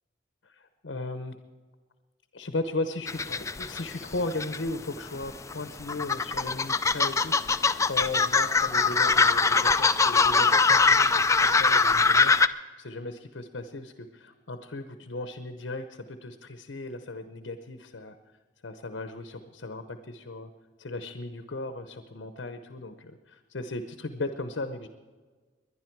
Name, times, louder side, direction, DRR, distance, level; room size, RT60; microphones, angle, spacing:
voice 1, 0.5-1.4 2.3-18.1 18.6-20.5 20.8-24.9, left 2 dB, 75° left, 8 dB, 0.9 m, -36 dB
sound 1, 3.1-4.7 5.0-12.5, left 4 dB, 15° left, 0.4 m, -22 dB
21.0 x 11.0 x 4.6 m, 1.4 s
head